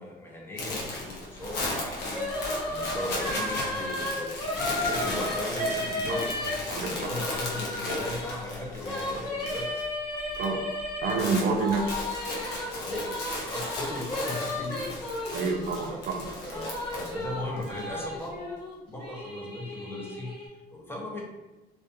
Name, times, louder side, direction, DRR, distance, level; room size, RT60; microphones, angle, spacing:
voice 1, 0.0-6.4 6.7-9.9 11.4-11.7 12.7-15.0 15.9-18.5 18.8-21.2, left 1 dB, 15° left, -3 dB, 0.7 m, -38 dB
sound 1, 0.6-9.9 10.1-10.5 10.8-17.8, left 2 dB, 70° left, 0.7 m, -36 dB
sound 2, 2.1-8.3 8.8-11.2 11.6-15.9 16.2-20.5, left 1 dB, 30° left, 1.0 m, -34 dB
voice 2, 6.7-7.1 10.4-10.7 11.0-12.0 15.3-16.3, right 4 dB, 60° right, 3 dB, 0.4 m, -28 dB
2.5 x 2.2 x 2.6 m, 1.1 s
cardioid pair, 110°, 17 cm